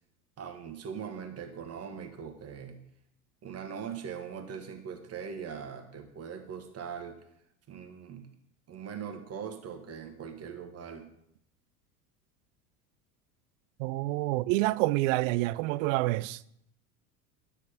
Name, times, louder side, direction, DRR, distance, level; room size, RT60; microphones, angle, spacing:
voice 1, 0.4-2.8 3.4-7.2 7.7-8.3 8.7-11.1, right 7 dB, 35° right, 1.5 m, -41 dB
voice 2, 13.8-16.4, right 18 dB, 60° right, 0.5 m, -28 dB
9.9 x 6.4 x 5.1 m
hypercardioid pair, 85°, 43 cm